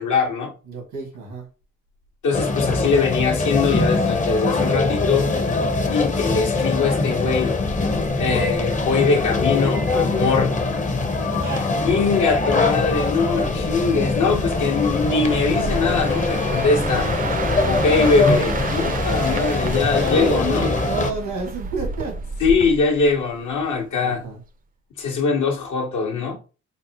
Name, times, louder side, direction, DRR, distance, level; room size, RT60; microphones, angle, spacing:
voice 1, 0.0-0.5 2.2-5.3 5.9-7.6 8.2-10.6 11.8-17.1 17.6-20.7 22.4-24.2 25.0-26.4, left 4 dB, 70° left, 0.9 m, -22 dB
voice 2, 0.7-1.5 11.3-11.7 19.8-22.2 24.0-24.4, right 3 dB, 90° right, 1.5 m, -30 dB
supermercado (mono), 2.3-21.1, left 3 dB, 25° left, 0.6 m, -22 dB
Buzz, 7.6-19.0, equal, 90° left, 1.1 m, -36 dB
Auto with fadeout birds, 12.8-23.8 24.2-24.5, right 4 dB, 30° right, 0.4 m, -31 dB
4.0 x 2.0 x 2.8 m
supercardioid pair, 45°, 31 cm